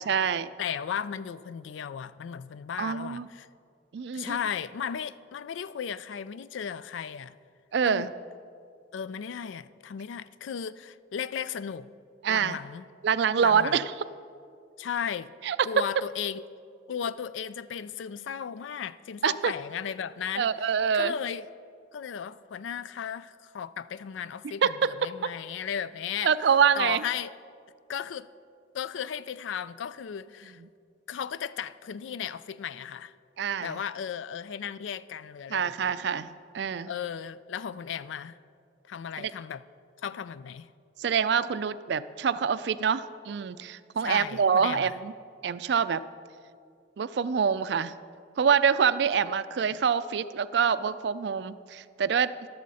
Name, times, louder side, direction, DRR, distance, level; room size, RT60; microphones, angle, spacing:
voice 1, 0.0-0.5 2.8-3.3 3.9-4.4 7.7-8.1 12.2-12.6 13.0-13.9 15.4-15.6 19.2-19.5 20.4-21.1 24.6-25.1 26.2-27.0 33.4-33.8 35.5-36.9 39.2-39.3 41.0-45.1 45.4-46.0 47.0-47.9 48.4-52.3, right 7 dB, 60° right, 0.4 m, -26 dB
voice 2, 0.6-3.5 4.1-7.4 7.8-8.1 8.9-11.9 12.3-12.9 13.4-13.9 14.8-15.3 15.7-16.4 16.9-20.5 20.9-21.5 21.9-26.3 26.8-27.3 27.9-28.3 28.7-30.6 31.1-33.1 33.6-36.0 36.8-38.4 38.9-39.6 40.0-40.7 44.0-44.9 49.6-49.8, left 8 dB, 80° left, 0.4 m, -35 dB
14.0 x 12.0 x 4.1 m
head